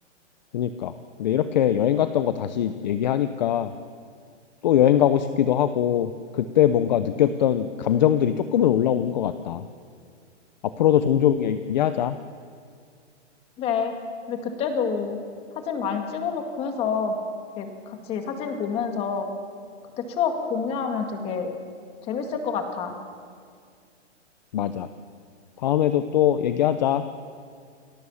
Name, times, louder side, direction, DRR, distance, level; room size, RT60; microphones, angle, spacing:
voice 1, 0.5-0.9 1.2-3.7 4.6-9.6 10.6-12.2 24.5-24.9 25.6-27.0, left 10 dB, 40° left, 11 dB, 0.9 m, -22 dB
voice 2, 13.6-13.9 14.3-15.2 15.6-17.2 17.6-19.3 20.0-21.5 22.0-22.9, left 6 dB, 15° left, 5 dB, 2.1 m, -28 dB
29.0 x 21.0 x 7.2 m, 2.1 s
hypercardioid pair, 165°, 36 cm